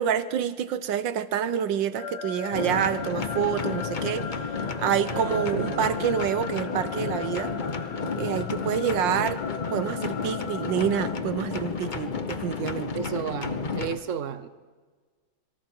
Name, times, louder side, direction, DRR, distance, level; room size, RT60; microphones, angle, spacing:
voice 1, 0.0-4.3 4.8-7.5 8.2-9.4 9.7-12.9, right 9 dB, 65° right, 13 dB, 1.4 m, -27 dB
sound 1, 1.9-11.1, left 5 dB, 85° left, 2.2 m, -38 dB
sound 2, 2.5-14.0, left 5 dB, 60° left, 0.5 m, -32 dB
sound 3, 5.0-11.3, right 1 dB, 40° left, 5.5 m, -47 dB
voice 2, 5.1-5.9 12.9-14.5, right 7 dB, 50° right, 12 dB, 1.0 m, -33 dB
27.0 x 22.5 x 4.5 m, 1.4 s
omnidirectional pair, 2.3 m